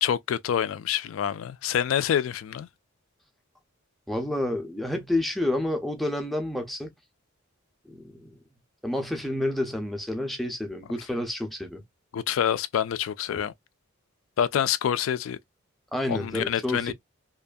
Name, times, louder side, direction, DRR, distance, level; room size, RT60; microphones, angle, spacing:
voice 1, 0.0-2.7 12.1-13.5 14.4-15.4 16.1-16.9, left 9 dB, 75° left, 0.3 m, -26 dB
voice 2, 4.1-6.9 7.9-8.4 8.8-11.8 13.3-13.5 15.9-16.9, left 1 dB, ahead, 0.5 m, -29 dB
2.6 x 2.4 x 2.2 m
head